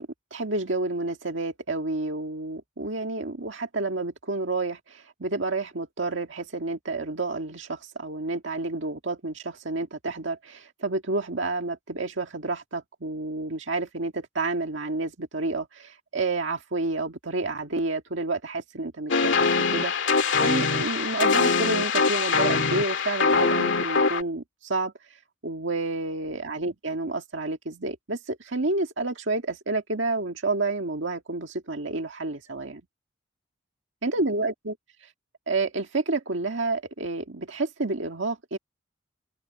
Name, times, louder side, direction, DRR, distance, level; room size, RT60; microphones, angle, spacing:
voice 1, 0.0-19.3 19.7-19.9 20.4-24.9 25.4-32.8 34.0-34.8 35.5-38.6, right 3 dB, 70° right, 1.9 m, -29 dB
sound 1, 19.1-24.2, left 4 dB, 65° left, 2.3 m, -23 dB
open air
head